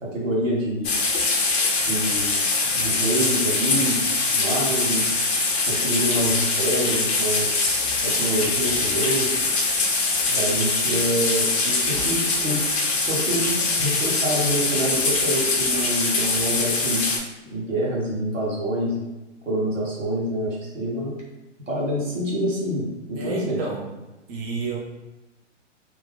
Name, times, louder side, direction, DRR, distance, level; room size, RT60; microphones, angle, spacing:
voice 1, 0.0-0.9 1.8-2.5 2.7-4.0 4.3-5.0 5.3-9.3 10.3-12.7 13.1-17.0 17.5-19.0 19.4-21.1 21.7-23.6, right 1 dB, 90° right, -5 dB, 1.4 m, -26 dB
sound 1, 0.8-17.2, left 3 dB, 55° left, 0.7 m, -23 dB
voice 2, 23.2-23.9 24.3-24.8, right 4 dB, 35° right, -3 dB, 0.6 m, -30 dB
2.8 x 2.2 x 3.3 m, 1.1 s
figure-of-eight pair, 120°, 38 cm